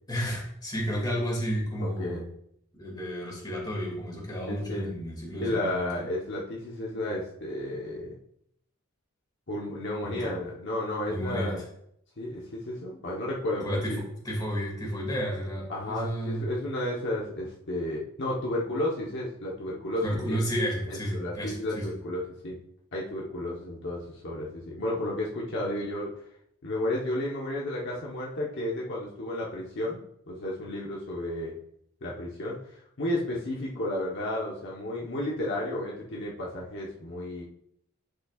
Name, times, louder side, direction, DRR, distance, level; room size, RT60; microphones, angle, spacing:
voice 1, 0.1-2.2 2.7-5.9 10.0-10.2 11.1-11.6 13.6-13.9 14.2-16.5 20.0-21.9, equal, 20° left, -2 dB, 2.4 m, -32 dB
voice 2, 1.8-2.3 4.5-4.9 5.4-8.1 9.5-11.6 12.2-14.0 15.7-20.4 20.9-22.6 22.9-26.1 26.6-30.0 30.3-31.5 32.0-37.4, left 1 dB, 55° left, -4 dB, 1.1 m, -32 dB
10.5 x 5.5 x 2.4 m, 0.73 s
head